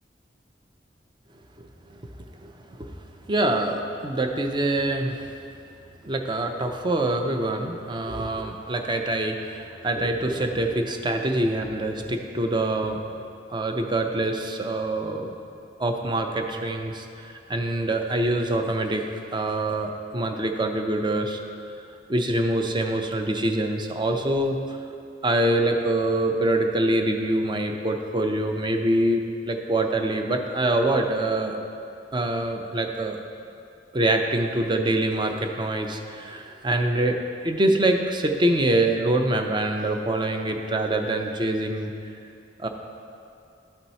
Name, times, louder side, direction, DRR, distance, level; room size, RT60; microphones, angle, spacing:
voice 1, 2.4-2.9 3.3-5.3 6.0-13.0 13.5-15.4 15.8-19.0 19.3-21.4 22.1-24.8 25.2-31.6 32.1-33.2 33.9-41.9 42.6-42.7, right 1 dB, 25° right, 4 dB, 0.5 m, -25 dB
12.0 x 4.4 x 4.1 m, 2.7 s
head